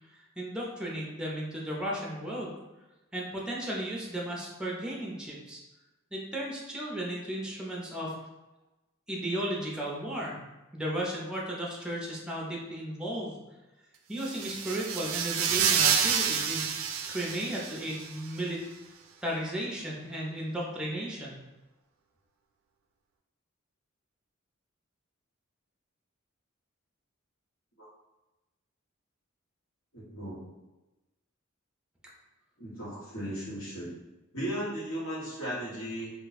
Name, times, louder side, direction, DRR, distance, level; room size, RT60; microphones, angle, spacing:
voice 1, 0.1-2.5 3.1-5.6 6.1-8.1 9.1-10.4 10.7-13.4 14.1-16.7 17.1-18.6 19.2-21.4, right 1 dB, 5° right, -3 dB, 0.6 m, -35 dB
sound 1, 14.2-18.1, right 7 dB, 70° right, 0.3 m, -28 dB
voice 2, 29.9-30.4 32.6-33.9 34.3-36.1, equal, 75° left, -8 dB, 1.3 m, -36 dB
2.5 x 2.2 x 4.0 m, 1.1 s
head